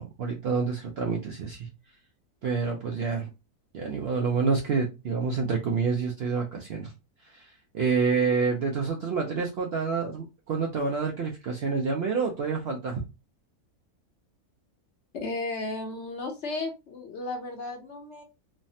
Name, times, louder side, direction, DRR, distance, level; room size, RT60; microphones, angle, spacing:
voice 1, 0.0-1.7 2.4-3.3 3.7-6.9 7.2-13.0, right 5 dB, 70° right, 0.6 m, -28 dB
voice 2, 15.1-18.2, left 2 dB, 60° left, 0.8 m, -34 dB
3.2 x 2.0 x 2.6 m
omnidirectional pair, 1.5 m